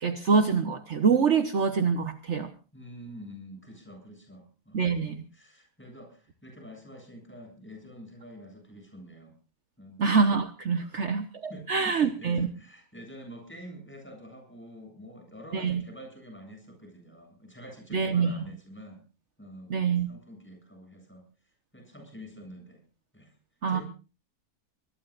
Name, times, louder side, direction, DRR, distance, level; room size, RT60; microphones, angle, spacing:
voice 1, 0.0-2.5 4.7-5.2 10.0-12.5 15.5-15.8 17.9-18.3 19.7-20.1 23.6-23.8, right 5 dB, 55° right, 7 dB, 1.3 m, -25 dB
voice 2, 2.7-9.3 9.8-10.0 10.8-11.1 11.5-19.0 19.4-21.2 21.7-22.8 23.1-23.3 23.7-23.8, equal, 10° left, 3 dB, 8.0 m, -47 dB
23.5 x 20.0 x 2.5 m, 0.34 s
omnidirectional pair, 1.5 m